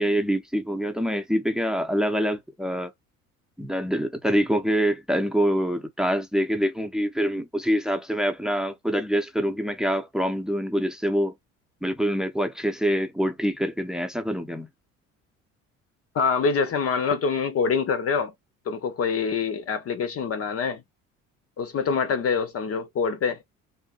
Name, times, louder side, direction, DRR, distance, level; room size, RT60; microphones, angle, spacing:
voice 1, 0.0-2.9 3.6-11.3 11.8-14.7, equal, ahead, 0.8 m, -25 dB
voice 2, 16.1-18.3 18.7-20.8 21.6-23.4, left 5 dB, 35° left, 0.7 m, -25 dB
4.2 x 2.6 x 2.4 m
figure-of-eight pair, 55°, 41 cm